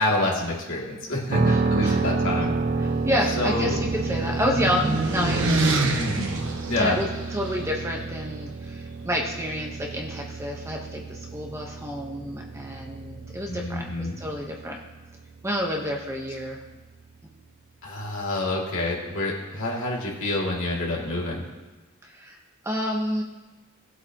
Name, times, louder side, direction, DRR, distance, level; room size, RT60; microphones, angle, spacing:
voice 1, 0.0-2.5 3.4-3.8 5.9-6.3 6.7-7.0 13.5-14.2 17.8-21.4, left 2 dB, 60° left, -4 dB, 2.9 m, -27 dB
sound 1, 1.3-17.2, right 3 dB, 40° right, 0.5 m, -30 dB
voice 2, 1.5-2.0 2.8-5.5 6.8-14.8 15.4-16.6 22.0-22.4 22.6-23.2, equal, 15° right, -1 dB, 1.2 m, -29 dB
sound 2, 2.4-7.6, right 2 dB, 60° right, 1.3 m, -27 dB
19.0 x 8.0 x 3.1 m, 1.2 s
head